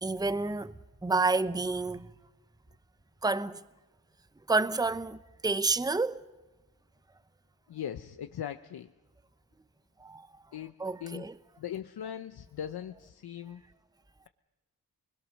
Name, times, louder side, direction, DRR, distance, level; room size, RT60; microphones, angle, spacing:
voice 1, 0.0-0.7 1.0-2.1 3.2-3.6 4.5-6.2 10.0-10.3 10.8-11.3, right 3 dB, 10° right, 0.8 m, -29 dB
voice 2, 7.7-8.9 10.5-10.7 11.0-11.3 11.6-13.6, left 9 dB, 80° left, 0.8 m, -39 dB
26.5 x 21.0 x 6.4 m
cardioid pair, 70°, 38 cm